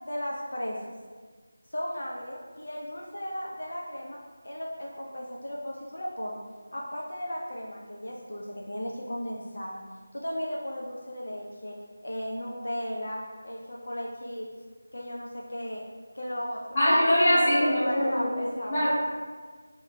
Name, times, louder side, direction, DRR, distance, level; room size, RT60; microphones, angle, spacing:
voice 1, 0.0-0.9 1.7-4.2 4.4-6.4 6.7-9.8 10.1-11.7 12.0-14.5 14.9-15.8 16.1-16.8 17.3-18.9, equal, 75° left, -2 dB, 0.4 m, -35 dB
voice 2, 16.7-18.3 18.7-18.9, equal, 25° left, -11 dB, 0.9 m, -22 dB
2.9 x 2.0 x 2.6 m, 1.5 s
figure-of-eight pair, 175°, 0 cm